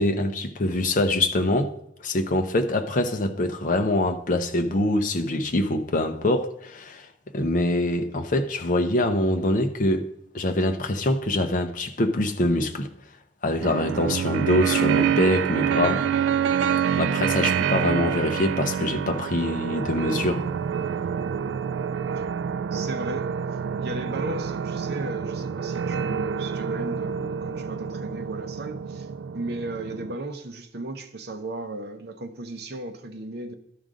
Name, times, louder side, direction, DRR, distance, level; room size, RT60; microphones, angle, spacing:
voice 1, 0.0-1.7 2.0-7.1 7.3-10.1 10.3-12.9 13.4-16.1 17.0-20.4, left 1 dB, 45° left, 0.6 m, -24 dB
sound 1, 13.6-30.2, right 7 dB, 90° right, 0.3 m, -27 dB
voice 2, 22.7-23.3 23.8-29.1 29.3-33.5, right 2 dB, 60° right, 0.8 m, -35 dB
12.0 x 5.1 x 3.7 m
head